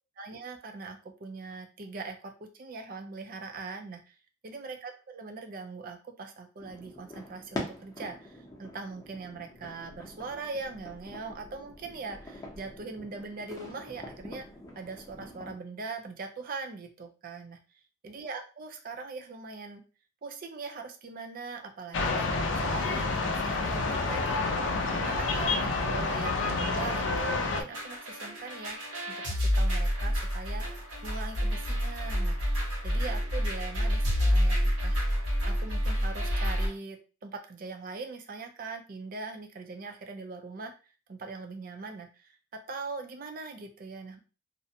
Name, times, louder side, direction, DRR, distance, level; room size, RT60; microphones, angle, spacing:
voice 1, 0.2-4.1 4.4-14.5 14.8-17.6 18.0-19.8 20.2-22.3 22.5-24.4 24.9-28.8 29.1-32.4 32.8-35.0 35.4-40.7 41.1-44.2, right 4 dB, 50° right, 5 dB, 0.4 m, -41 dB
sound 1, 6.6-15.5, left 1 dB, 20° left, 0.6 m, -44 dB
sound 2, 21.9-27.6, left 3 dB, 75° left, 0.4 m, -29 dB
sound 3, 27.7-36.7, equal, 80° right, 1.1 m, -28 dB
2.6 x 2.1 x 2.6 m, 0.35 s
head